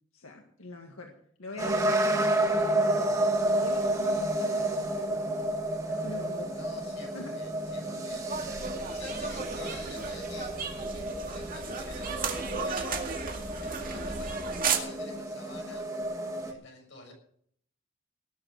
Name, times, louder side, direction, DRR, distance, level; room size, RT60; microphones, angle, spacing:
voice 1, 0.1-1.1 1.4-2.3 2.7-5.5 5.9-6.6 7.1-7.4 8.1-8.2, left 2 dB, 85° left, 2 dB, 1.8 m, -43 dB
sound 1, 1.6-16.5, right 1 dB, 15° right, 1.7 m, -31 dB
voice 2, 6.5-8.3 8.9-10.6 10.9-13.0 13.6-14.4 14.7-15.9 16.5-17.1, left 2 dB, 60° left, 1 dB, 6.4 m, -49 dB
sound 2, 8.3-14.8, right 5 dB, 40° right, 2.2 m, -34 dB
18.5 x 8.0 x 6.4 m, 0.63 s
head